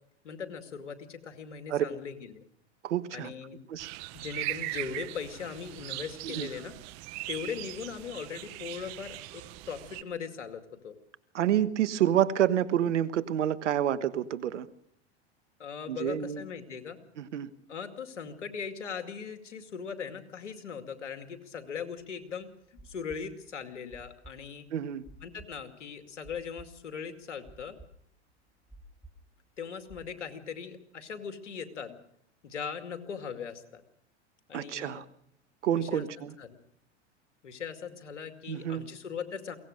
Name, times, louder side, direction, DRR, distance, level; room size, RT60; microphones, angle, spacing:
voice 1, 0.2-2.4 3.1-3.6 4.1-6.7 7.3-11.0 15.6-17.0 17.7-22.5 22.8-24.7 25.2-27.8 29.6-32.0 32.4-33.8 34.5-35.1 35.7-36.6 37.4-39.6, left 6 dB, 90° left, 8 dB, 2.4 m, -39 dB
voice 2, 2.8-3.3 3.7-3.9 6.2-6.5 11.3-14.7 15.9-16.4 17.2-17.5 24.7-25.0 34.5-35.0 35.6-36.3 38.5-38.8, right 10 dB, 80° right, 14 dB, 1.4 m, -28 dB
sound 1, 3.8-10.0, right 19 dB, 50° right, 1.2 m, -40 dB
sound 2, 22.0-30.1, right 2 dB, ahead, 5.8 m, -53 dB
22.5 x 18.0 x 6.5 m, 0.69 s
hypercardioid pair, 100°, 35 cm